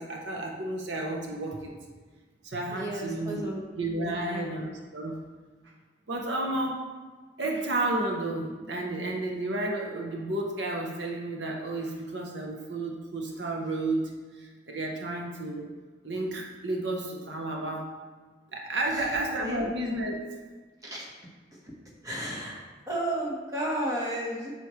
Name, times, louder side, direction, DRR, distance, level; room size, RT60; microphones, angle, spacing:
voice 1, 0.0-1.8 2.4-3.5 3.7-5.2 5.6-5.7 6.1-6.9 7.4-15.7 16.0-17.9 18.5-20.2, right 2 dB, 70° right, 0 dB, 0.9 m, -32 dB
voice 2, 2.7-3.6 4.2-4.5 18.9-19.1 19.4-19.6 20.8-21.1 21.5-21.6 22.0-24.5, right 1 dB, 20° right, -4 dB, 1.4 m, -33 dB
8.2 x 6.0 x 3.2 m, 1.3 s
head